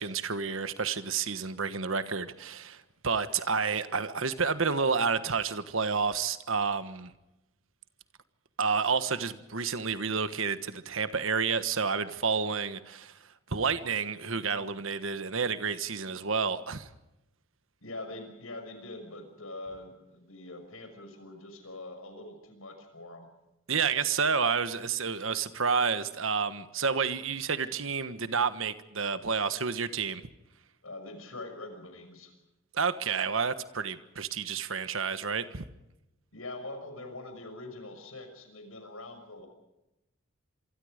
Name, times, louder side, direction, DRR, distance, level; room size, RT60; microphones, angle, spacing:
voice 1, 0.0-7.1 8.6-13.1 13.5-16.9 23.7-30.2 32.7-35.6, right 5 dB, 70° right, 12 dB, 1.4 m, -30 dB
voice 2, 17.8-23.3 30.8-32.3 36.3-39.5, left 2 dB, 80° left, 7 dB, 6.0 m, -43 dB
27.0 x 24.0 x 5.1 m, 0.94 s
head